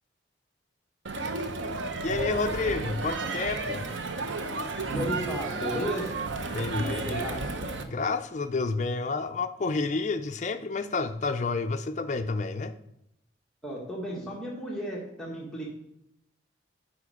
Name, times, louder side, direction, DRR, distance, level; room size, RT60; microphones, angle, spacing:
Crowd, 1.1-7.8, right 3 dB, 75° right, 0.7 m, -32 dB
voice 1, 2.0-3.9 6.5-7.2 7.9-12.7, left 3 dB, 40° left, 9 dB, 0.4 m, -30 dB
voice 2, 4.9-6.2 6.8-7.4 13.6-15.7, equal, 5° left, -4 dB, 1.5 m, -34 dB
8.6 x 5.0 x 4.8 m, 0.81 s
head